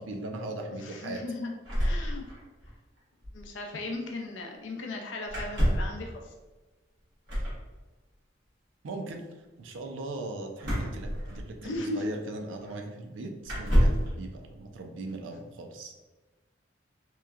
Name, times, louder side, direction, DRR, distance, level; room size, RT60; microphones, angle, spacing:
voice 1, 0.0-1.2 8.8-9.2 9.6-15.9, right 2 dB, 80° right, 3 dB, 0.4 m, -39 dB
voice 2, 0.8-1.5 1.7-2.2 3.3-6.3 11.6-12.1, left 2 dB, 75° left, 1 dB, 0.5 m, -37 dB
sound 1, 1.7-2.7 3.0-3.1 3.2-3.5 5.3-6.0 7.3-7.6 10.6-11.8 12.6-12.7 13.4-14.1, equal, 60° right, 1.1 m, -27 dB
3.0 x 2.1 x 2.3 m, 1.2 s
head